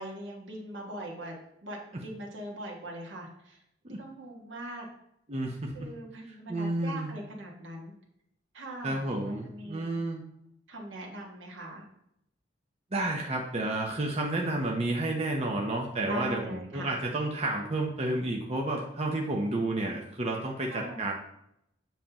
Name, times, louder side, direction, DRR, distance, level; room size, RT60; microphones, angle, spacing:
voice 1, 0.0-1.4 1.6-3.6 3.9-4.9 5.7-7.9 8.5-10.0 10.7-11.8 16.0-16.9 20.7-21.1, right 1 dB, 75° right, -1 dB, 1.5 m, -41 dB
voice 2, 5.3-5.7 6.5-7.1 8.8-10.2 12.9-21.1, right 2 dB, 35° right, 0 dB, 0.7 m, -31 dB
7.4 x 5.3 x 2.9 m, 0.77 s
head